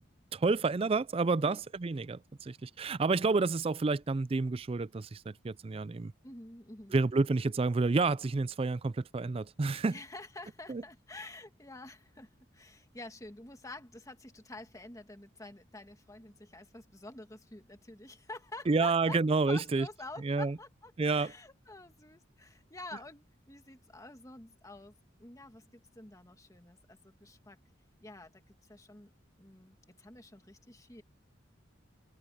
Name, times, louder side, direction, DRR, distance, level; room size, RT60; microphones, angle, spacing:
voice 1, 0.3-6.1 6.9-10.0 10.7-10.8 18.7-19.9 20.2-20.6 21.0-21.3, right 3 dB, 30° right, 0.4 m, -29 dB
voice 2, 6.2-7.0 9.9-24.9 25.2-27.6 28.0-29.1 29.4-31.0, left 2 dB, 15° left, 1.8 m, -49 dB
head